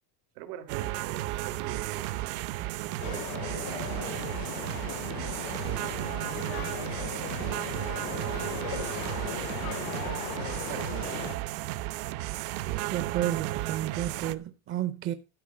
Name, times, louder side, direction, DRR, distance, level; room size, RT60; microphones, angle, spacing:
voice 1, 0.3-2.1 2.7-6.8 8.1-8.6 9.3-11.5, right 11 dB, 85° right, 2.9 m, -44 dB
sound 1, 0.7-14.3, right 16 dB, 65° right, 1.1 m, -34 dB
sound 2, 3.0-11.4, left 20 dB, 50° left, 0.5 m, -38 dB
voice 2, 12.9-15.1, right 12 dB, 30° right, 0.5 m, -31 dB
12.5 x 5.4 x 7.4 m
cardioid pair, 170°, 47 cm